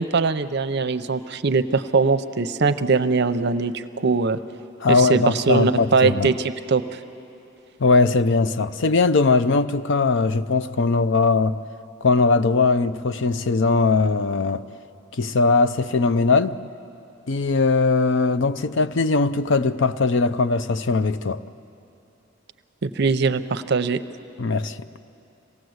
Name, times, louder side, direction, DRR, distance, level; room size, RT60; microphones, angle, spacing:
voice 1, 0.0-4.4 4.9-6.8 22.8-24.0, right 4 dB, 55° right, 0.7 m, -21 dB
voice 2, 4.8-6.3 7.8-11.6 12.0-14.6 15.1-16.6 17.3-21.4 24.4-24.8, left 3 dB, 60° left, 0.6 m, -20 dB
26.5 x 18.0 x 7.9 m
head